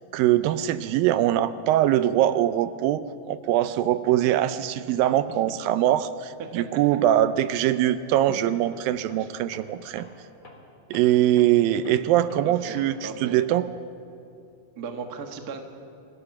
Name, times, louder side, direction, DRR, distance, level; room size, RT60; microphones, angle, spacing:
voice 1, 0.1-10.1 10.9-13.7, right 12 dB, 80° right, 13 dB, 2.3 m, -22 dB
voice 2, 4.9-5.4 6.4-6.6 9.2-9.3 12.4-13.3 14.8-15.6, right 5 dB, 65° right, 4 dB, 0.9 m, -37 dB
Tools, 7.6-7.9 8.1-13.2, left 2 dB, 25° left, 2.8 m, -49 dB
26.5 x 16.5 x 5.9 m, 2.6 s
omnidirectional pair, 4.2 m